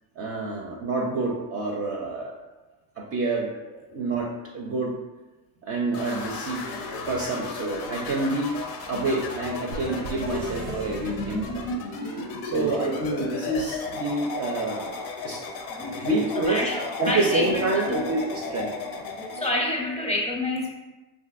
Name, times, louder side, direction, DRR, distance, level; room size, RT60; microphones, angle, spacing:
voice 1, 0.2-2.3 3.0-4.3 4.5-5.0 5.6-6.7 7.1-8.5 8.9-11.7 12.4-15.4 15.9-16.6 17.0-18.8, right 2 dB, 30° right, -1 dB, 0.4 m, -28 dB
sound 1, 5.9-19.5, left 3 dB, 90° left, 0.6 m, -34 dB
sound 2, 9.7-12.5, right 4 dB, 90° right, 0.6 m, -39 dB
voice 2, 12.2-12.8 15.2-15.4 15.7-16.1 16.4-18.0 19.1-20.7, left 1 dB, 15° left, -2 dB, 0.6 m, -29 dB
3.4 x 2.5 x 2.4 m, 1.1 s
supercardioid pair, 90°, 49 cm